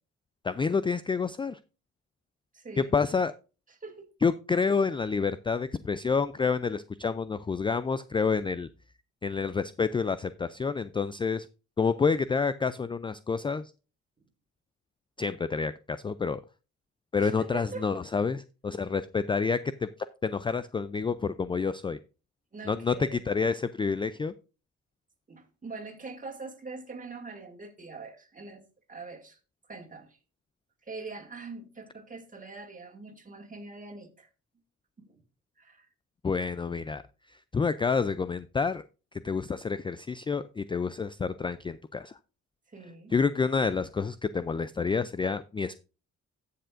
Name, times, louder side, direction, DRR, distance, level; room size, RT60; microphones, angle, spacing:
voice 1, 0.4-1.6 2.8-3.3 4.2-8.7 9.2-11.5 11.8-13.7 15.2-16.4 17.1-19.9 20.2-22.0 22.7-24.3 36.2-37.0 37.5-38.8 39.2-42.2 43.1-45.7, left 5 dB, 15° left, 0.3 m, -28 dB
voice 2, 2.5-2.9 3.7-4.0 17.2-17.9 22.5-23.3 25.3-29.4 29.7-30.2 30.8-34.3 35.0-35.2 35.6-35.9 42.7-43.1, right 4 dB, 25° right, 2.3 m, -43 dB
13.5 x 6.9 x 2.5 m
cardioid pair, 90°, 30 cm